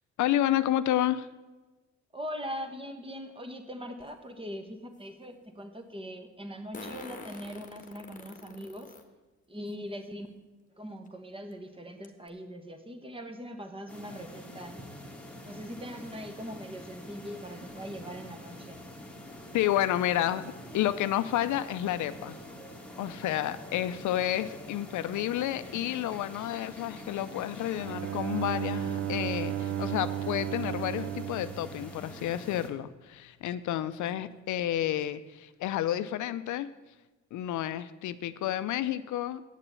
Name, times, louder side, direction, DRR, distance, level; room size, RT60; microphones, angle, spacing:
voice 1, 0.2-1.3 19.5-20.4 20.7-22.4 23.0-36.7 37.3-39.4, left 12 dB, 75° left, 14 dB, 0.5 m, -30 dB
voice 2, 2.1-8.9 9.5-10.3 10.8-14.7 15.4-18.9, equal, 20° right, 6 dB, 1.4 m, -41 dB
Fart, 4.0-4.1 6.7-9.0 9.7-9.8 11.1-11.2 11.5-11.6 12.0-12.3, left 3 dB, 25° left, 1.4 m, -45 dB
sound 1, 13.9-32.7, left 1 dB, 5° left, 1.9 m, -46 dB
Bowed string instrument, 27.8-32.6, right 11 dB, 50° right, 0.4 m, -34 dB
8.4 x 6.9 x 8.3 m, 1.2 s
cardioid pair, 90°, 30 cm